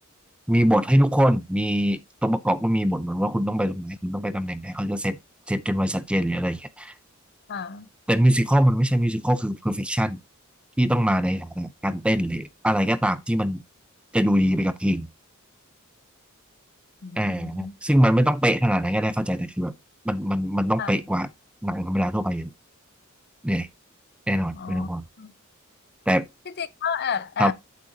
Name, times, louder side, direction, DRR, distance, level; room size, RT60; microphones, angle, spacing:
voice 1, 0.5-5.2 5.5-6.9 8.1-10.2 10.8-13.6 14.1-15.1 17.2-19.7 20.1-21.3 21.6-22.5 23.4-23.7 24.3-25.0 26.1-26.2 27.4-27.5, equal, 5° right, 0.5 m, -23 dB
voice 2, 7.5-7.9 17.0-17.7 20.8-20.9 24.5-24.9 25.2-25.3 26.5-27.5, left 7 dB, 50° left, 0.6 m, -31 dB
8.3 x 7.8 x 2.8 m
head